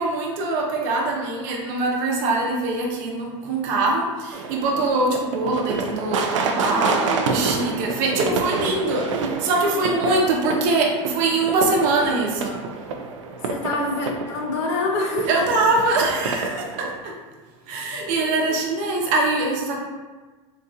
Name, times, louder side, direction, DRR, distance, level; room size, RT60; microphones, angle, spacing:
voice 1, 0.0-12.6 15.3-17.1 17.7-19.8, right 2 dB, 55° right, -1 dB, 0.9 m, -23 dB
sound 1, 4.3-17.0, right 4 dB, 90° right, 0.4 m, -28 dB
voice 2, 6.6-7.7 9.7-10.2 10.6-10.7 13.4-15.3 17.9-18.6, left 2 dB, 70° left, 1 dB, 0.8 m, -28 dB
4.0 x 2.6 x 2.4 m, 1.3 s
hypercardioid pair, 105°, 16 cm